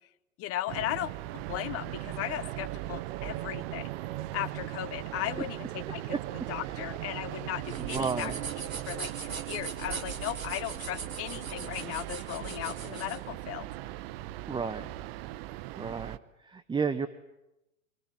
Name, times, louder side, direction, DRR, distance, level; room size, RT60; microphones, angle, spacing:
voice 1, 0.4-3.9 4.3-6.2 6.5-8.3 8.9-13.7, left 14 dB, 35° left, 17 dB, 1.2 m, -36 dB
sound 1, 0.7-16.2, right 16 dB, 50° right, 1.1 m, -39 dB
voice 2, 6.6-6.9 7.8-8.4 14.5-14.9 15.8-17.1, right 5 dB, 10° right, 11 dB, 1.0 m, -33 dB
sound 2, 7.6-13.2, right 5 dB, 85° right, 1.9 m, -41 dB
25.0 x 23.5 x 9.8 m, 0.91 s
figure-of-eight pair, 90°, 40 cm